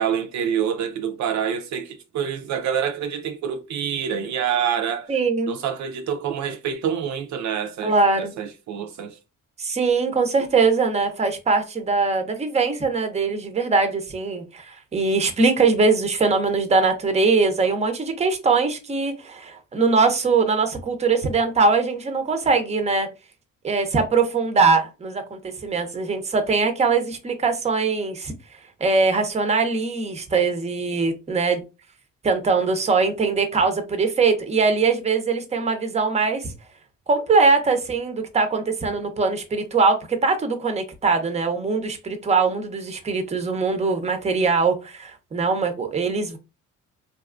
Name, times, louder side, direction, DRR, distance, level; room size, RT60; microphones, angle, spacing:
voice 1, 0.0-5.1 5.5-9.2, right 8 dB, 70° right, 0.5 m, -27 dB
voice 2, 5.1-5.5 7.8-8.3 9.6-23.1 23.6-28.3 28.8-31.6 32.2-36.5 37.1-46.4, right 4 dB, 20° right, 0.6 m, -21 dB
2.6 x 2.3 x 2.4 m
cardioid pair, 90°, 30 cm